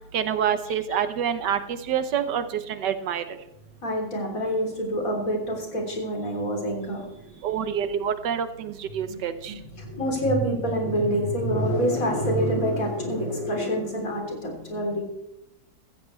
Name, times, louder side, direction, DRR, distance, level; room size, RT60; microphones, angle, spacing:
voice 1, 0.1-1.6 1.9-2.4 2.7-3.2 7.4-9.5, right 8 dB, 90° right, 11 dB, 1.6 m, -26 dB
voice 2, 3.8-7.1 9.1-15.0, equal, 55° left, 0 dB, 3.8 m, -26 dB
15.5 x 15.0 x 3.2 m, 0.88 s
omnidirectional pair, 1.8 m